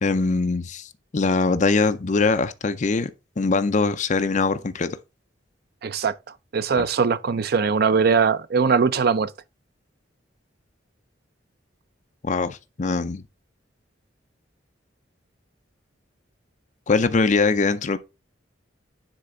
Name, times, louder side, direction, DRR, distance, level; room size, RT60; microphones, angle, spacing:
voice 1, 0.0-3.1 3.4-5.0 6.8-6.9 12.2-13.2 16.9-18.0, left 4 dB, 40° left, 0.5 m, -22 dB
voice 2, 5.8-6.1 6.5-9.3, right 5 dB, 55° right, 0.5 m, -21 dB
9.9 x 3.3 x 3.7 m
head